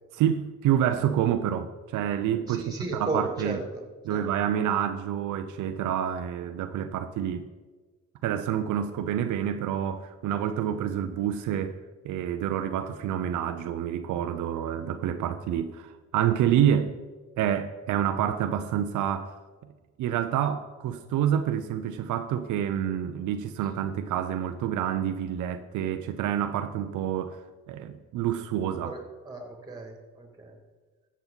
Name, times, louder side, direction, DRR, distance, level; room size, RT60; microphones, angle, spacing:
voice 1, 0.2-3.6 4.0-7.5 8.2-11.8 12.0-17.0 17.4-19.4 20.0-29.0, right 10 dB, 85° right, 0.6 m, -28 dB
voice 2, 2.5-3.8 4.1-4.2 28.8-30.6, right 2 dB, 15° right, 2.7 m, -35 dB
14.0 x 7.4 x 4.0 m
cardioid pair, 90°, 30 cm